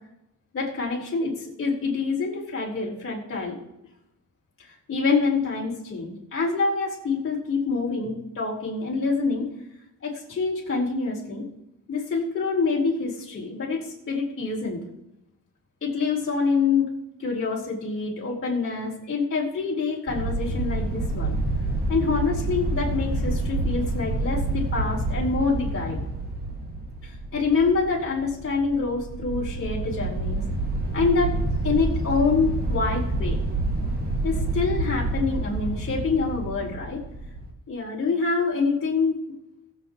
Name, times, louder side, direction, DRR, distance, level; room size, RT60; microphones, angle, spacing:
voice 1, 0.5-3.6 4.6-9.5 10.0-11.5 11.9-14.8 15.8-16.9 17.2-21.4 21.9-26.0 27.0-30.4 30.9-31.4 31.6-33.4 34.2-37.0 37.7-39.2, left 4 dB, 45° left, -4 dB, 4.3 m, -26 dB
sound 1, 20.1-37.5, right 2 dB, 30° right, 2.1 m, -28 dB
22.0 x 7.6 x 3.1 m, 0.84 s
cardioid pair, 140°, 31 cm